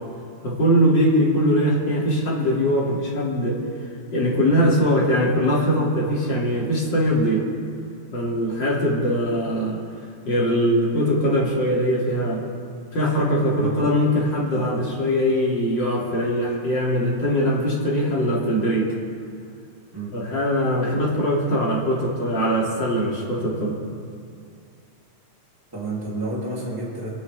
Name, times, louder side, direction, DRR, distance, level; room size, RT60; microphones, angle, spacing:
voice 1, 0.4-3.6 4.1-7.4 8.1-9.8 10.2-12.4 12.9-18.9 20.1-23.8, equal, 60° left, -4 dB, 3.3 m, -21 dB
voice 2, 13.6-14.0 14.5-14.8 19.9-20.1 25.7-27.2, right 2 dB, 10° right, -6 dB, 2.9 m, -31 dB
27.5 x 9.3 x 3.5 m, 2.4 s
omnidirectional pair, 2.3 m